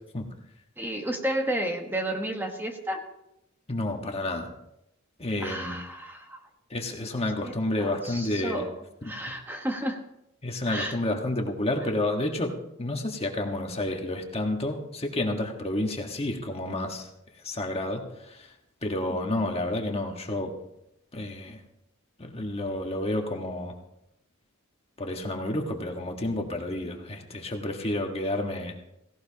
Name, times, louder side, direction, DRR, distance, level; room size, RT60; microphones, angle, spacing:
voice 1, 0.8-3.0 5.4-6.4 6.9-7.0 7.4-10.0 10.6-11.0 19.1-19.2, right 1 dB, 10° right, 3 dB, 1.3 m, -32 dB
voice 2, 3.7-4.5 5.2-5.8 6.7-8.6 10.4-12.5 12.8-17.1 17.4-18.5 18.8-20.5 21.1-21.6 22.2-23.7 25.0-28.7, left 1 dB, 30° left, 2 dB, 1.5 m, -30 dB
17.0 x 17.0 x 2.9 m, 0.82 s
head